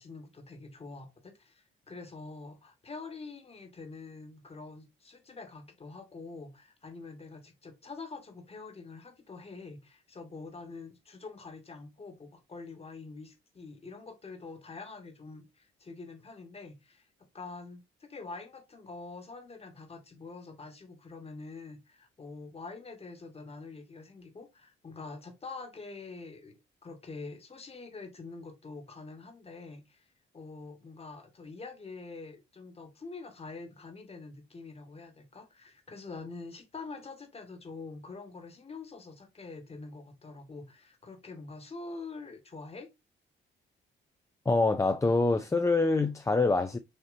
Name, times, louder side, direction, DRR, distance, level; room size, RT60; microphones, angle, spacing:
voice 1, 0.0-17.1 17.3-26.6 26.8-30.1 30.3-42.9, left 3 dB, 30° left, 1.3 m, -45 dB
voice 2, 44.5-46.8, left 3 dB, 15° left, 0.4 m, -25 dB
6.5 x 2.9 x 2.5 m
cardioid pair, 90°, 20 cm